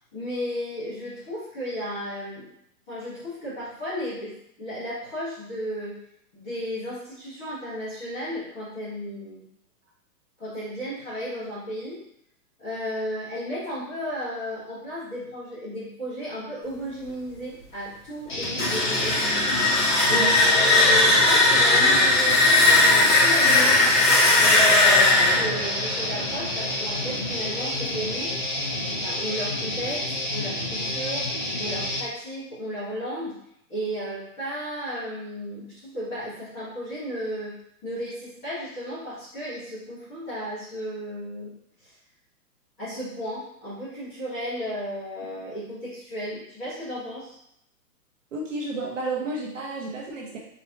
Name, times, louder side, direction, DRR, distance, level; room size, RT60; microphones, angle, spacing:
voice 1, 0.1-2.5 2.9-6.0 6.3-9.5 10.4-12.0 12.6-19.2 20.1-23.8 24.4-28.3 29.0-31.3 31.6-33.4 33.7-41.5 41.8-41.9 42.8-47.4, equal, 10° left, -13 dB, 1.2 m, -34 dB
Guitar, 18.3-32.0, left 1 dB, 30° left, 0.6 m, -29 dB
sound 1, 18.4-27.2, left 2 dB, 50° left, 1.4 m, -19 dB
voice 2, 20.1-20.5 48.3-50.4, right 3 dB, 50° right, -2 dB, 0.9 m, -31 dB
4.1 x 3.8 x 2.8 m, 0.73 s
hypercardioid pair, 180°, 49 cm